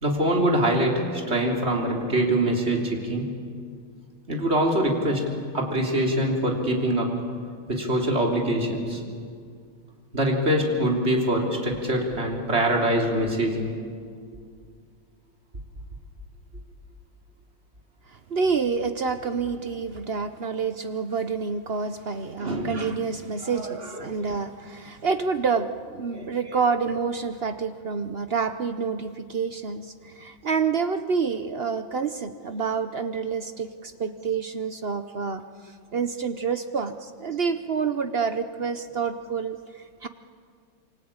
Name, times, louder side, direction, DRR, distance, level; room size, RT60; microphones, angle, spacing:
voice 1, 0.0-3.3 4.3-7.1 7.7-9.0 10.1-13.7 22.4-22.8 23.5-23.8 24.1-24.2 26.1-26.3, right 1 dB, 30° right, 0 dB, 3.7 m, -24 dB
voice 2, 18.1-40.1, right 5 dB, 65° right, 9 dB, 0.6 m, -28 dB
27.5 x 24.5 x 8.7 m, 2.2 s
omnidirectional pair, 2.2 m